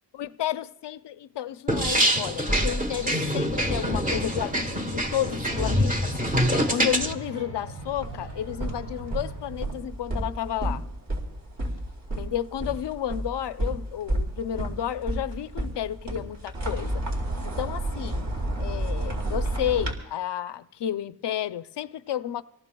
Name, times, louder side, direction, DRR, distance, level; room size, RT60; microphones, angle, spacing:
voice 1, 0.2-10.8 12.2-17.0 17.4-18.3 18.6-22.4, left 11 dB, 65° left, 0.7 m, -32 dB
sound 1, 1.7-7.1, equal, 20° right, 1.2 m, -25 dB
sound 2, 2.9-9.6, right 1 dB, 90° right, 7.2 m, -42 dB
sound 3, 7.8-19.9, right 1 dB, 50° right, 3.6 m, -31 dB
26.5 x 18.5 x 2.3 m
cardioid pair, 95°, 45 cm